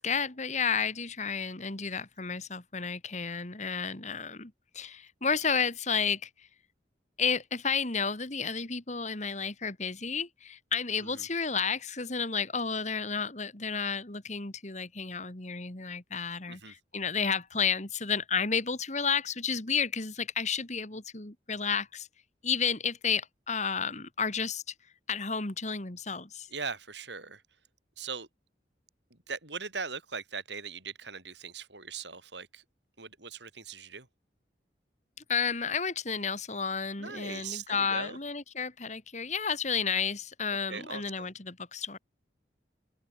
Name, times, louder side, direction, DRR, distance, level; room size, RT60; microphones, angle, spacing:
voice 1, 0.0-6.3 7.2-22.1 22.4-24.6 25.1-26.5 35.3-42.0, left 6 dB, 40° left, 2.0 m, -31 dB
voice 2, 26.5-27.4 28.0-28.3 29.1-32.6 33.0-34.1 37.0-38.2 40.7-41.3, right 5 dB, 75° right, 7.2 m, -40 dB
open air
head